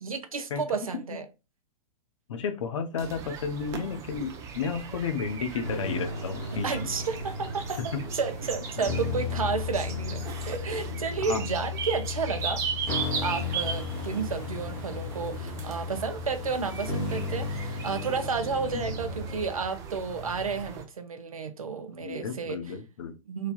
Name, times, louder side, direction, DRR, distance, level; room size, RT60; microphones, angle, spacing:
voice 1, 0.0-1.3 6.6-22.6 23.3-23.5, right 5 dB, 75° right, 0.5 m, -32 dB
voice 2, 2.3-6.9 7.8-8.0 11.2-11.5 18.7-18.9 22.0-23.1, left 6 dB, 60° left, 0.5 m, -32 dB
sound 1, 3.0-20.8, right 6 dB, 20° right, 0.3 m, -38 dB
sound 2, 5.6-19.4, left 4 dB, 15° left, 0.8 m, -35 dB
sound 3, 13.0-18.3, right 3 dB, 35° right, 0.9 m, -50 dB
3.1 x 2.1 x 2.2 m
figure-of-eight pair, 105°, 18 cm